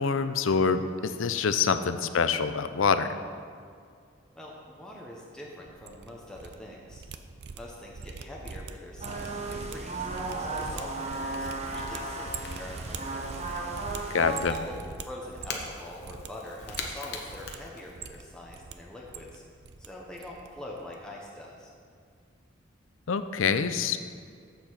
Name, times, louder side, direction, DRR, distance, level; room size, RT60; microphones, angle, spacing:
voice 1, 0.0-3.1 14.1-14.5 23.1-24.0, left 5 dB, 85° left, 11 dB, 0.5 m, -26 dB
voice 2, 4.3-7.0 7.5-10.1 10.4-13.3 14.2-14.8 15.1-19.4 19.8-21.7, left 1 dB, 5° left, -3 dB, 0.9 m, -44 dB
sound 1, 5.7-6.6 6.8-15.8 16.0-16.3 16.6-17.6 17.9-18.7 19.0-19.9 20.1-20.5 20.7-20.9, right 4 dB, 55° right, 0.5 m, -42 dB
sound 2, 9.0-14.4, right 2 dB, 35° right, 0.9 m, -35 dB
Crackle / Crack, 9.2-18.4, left 4 dB, 55° left, 1.1 m, -45 dB
7.8 x 7.0 x 6.3 m, 2.2 s
head